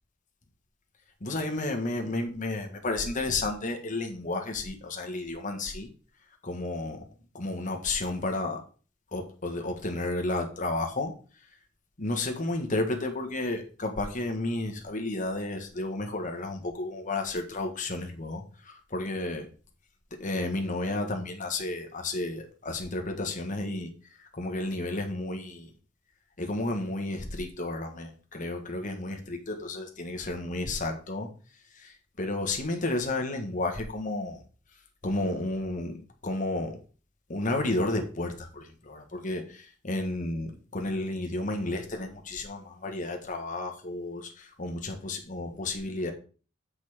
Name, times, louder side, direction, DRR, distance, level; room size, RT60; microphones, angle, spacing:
voice 1, 1.2-5.9 6.4-7.0 7.3-8.6 9.1-11.1 12.0-19.5 20.1-23.9 24.2-25.7 26.4-31.3 31.7-34.4 35.0-36.8 37.3-46.1, left 2 dB, 45° left, 3 dB, 1.4 m, -32 dB
6.8 x 5.3 x 4.9 m, 0.37 s
head